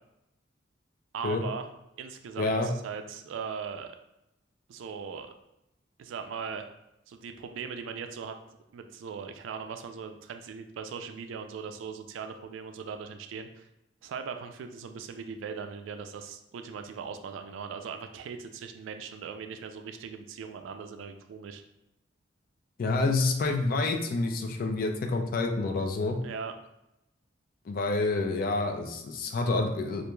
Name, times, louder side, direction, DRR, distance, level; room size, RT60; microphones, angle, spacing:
voice 1, 1.1-1.7 2.0-4.0 4.7-5.3 6.0-6.7 7.1-8.4 8.7-13.7 14.0-21.6 26.2-26.5, right 6 dB, 85° right, 7 dB, 0.3 m, -39 dB
voice 2, 2.4-2.7 22.8-26.2 27.7-30.1, left 3 dB, 50° left, 4 dB, 0.3 m, -28 dB
2.4 x 2.2 x 3.0 m, 0.88 s
head